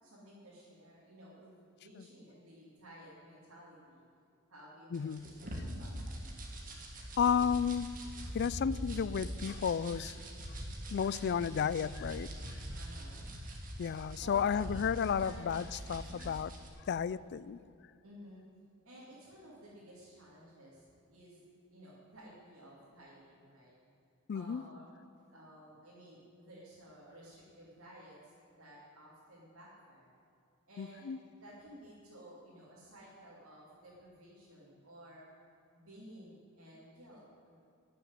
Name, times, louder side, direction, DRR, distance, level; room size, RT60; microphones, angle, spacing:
voice 1, 0.0-4.0 4.5-6.2 12.7-13.3 14.2-14.8 15.1-15.5 18.0-18.4 18.8-23.8 24.3-24.9 25.3-30.1 30.7-35.2 35.7-37.6, equal, 70° right, -8 dB, 2.9 m, -54 dB
voice 2, 4.9-5.3 7.2-8.0 8.3-10.2 10.9-12.3 13.8-16.5 16.8-17.6 24.3-24.6 30.8-31.2, left 7 dB, 50° left, 18 dB, 0.3 m, -32 dB
sound 1, 4.9-16.7, equal, 40° right, 1.9 m, -43 dB
12.5 x 7.0 x 9.5 m, 2.6 s
head